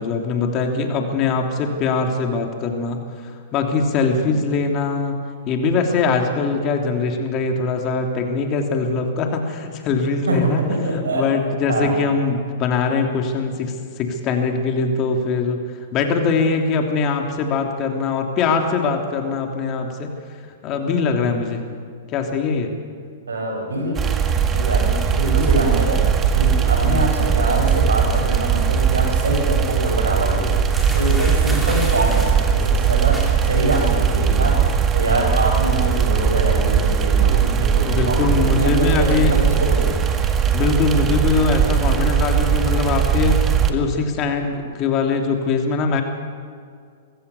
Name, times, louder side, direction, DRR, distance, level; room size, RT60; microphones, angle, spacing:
voice 1, 0.0-3.0 3.5-5.2 5.5-10.6 10.9-15.6 15.9-20.1 20.6-21.6 22.1-22.7 26.8-27.1 31.5-31.6 35.6-35.8 37.6-39.3 40.5-46.0, left 4 dB, 35° left, 3 dB, 3.0 m, -22 dB
voice 2, 10.3-11.3 11.7-11.9 21.2-21.3 23.3-24.0 24.5-26.0 26.3-30.6 30.9-40.0 40.9-41.1, right 1 dB, 85° right, 0 dB, 7.8 m, -24 dB
sound 1, 24.0-43.7, right 7 dB, 25° right, 1.8 m, -19 dB
sound 2, 30.7-34.3 34.5-34.9 35.2-35.8, right 1 dB, 5° right, 4.1 m, -34 dB
24.5 x 15.5 x 7.0 m, 2.1 s
hypercardioid pair, 115°, 0 cm